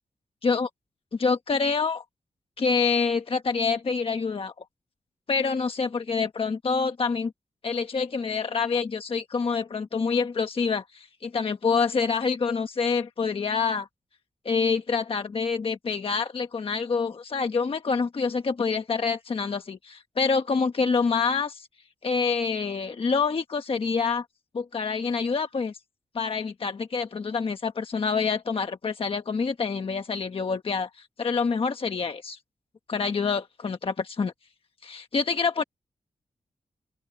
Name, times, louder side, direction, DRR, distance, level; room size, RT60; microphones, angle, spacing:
voice 1, 1.2-2.0 2.6-4.5 5.3-7.3 7.6-13.9 14.4-21.7 22.0-24.2 24.5-25.8 26.1-32.4 32.9-34.3 34.8-35.6, left 5 dB, 45° left, 1.2 m, -26 dB
open air
wide cardioid pair, 145°, 13 cm